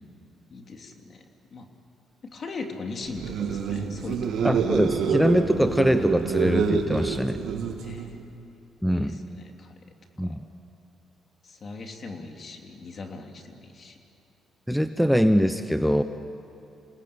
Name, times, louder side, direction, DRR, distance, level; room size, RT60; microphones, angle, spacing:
voice 1, 0.5-1.2 1.5-1.7 2.2-4.5 7.8-8.2 8.8-9.8 10.2-10.4 11.4-14.0, left 3 dB, 50° left, 3 dB, 3.0 m, -39 dB
sound 1, 3.1-8.2, right 6 dB, 75° right, 2.6 m, -27 dB
voice 2, 4.4-7.4 8.8-9.2 10.2-10.4 14.7-16.0, equal, ahead, 9 dB, 0.9 m, -23 dB
27.5 x 20.0 x 8.7 m, 2.9 s
cardioid pair, 90°, 0 cm